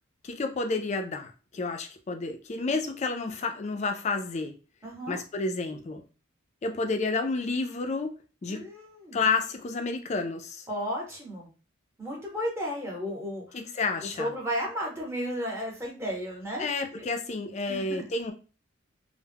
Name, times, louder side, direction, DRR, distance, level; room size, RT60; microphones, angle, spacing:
voice 1, 0.2-4.5 5.1-6.0 6.6-8.1 8.4-8.6 9.1-10.7 13.5-14.3 16.6-18.3, left 3 dB, 35° left, 5 dB, 0.3 m, -30 dB
voice 2, 4.8-5.2 8.5-9.2 10.7-11.5 12.0-13.6 14.2-16.7 16.9-17.1 17.6-18.1, equal, 10° right, -3 dB, 0.8 m, -33 dB
2.2 x 2.0 x 3.3 m, 0.34 s
head